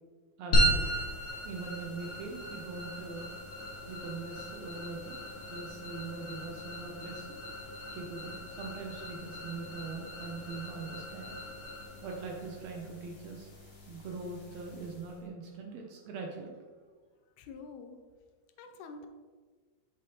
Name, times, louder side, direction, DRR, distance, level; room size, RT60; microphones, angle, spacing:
voice 1, 0.4-0.9 1.4-3.3 3.9-5.2 5.5-7.4 7.9-11.3 12.0-13.5 13.9-16.6, right 4 dB, 75° right, 1 dB, 1.6 m, -42 dB
sound 1, 0.5-15.2, right 1 dB, 45° left, 1.8 m, -36 dB
voice 2, 17.4-18.0 18.6-19.1, left 4 dB, 90° left, 6 dB, 2.1 m, -46 dB
6.2 x 5.4 x 2.9 m, 1.4 s
omnidirectional pair, 3.5 m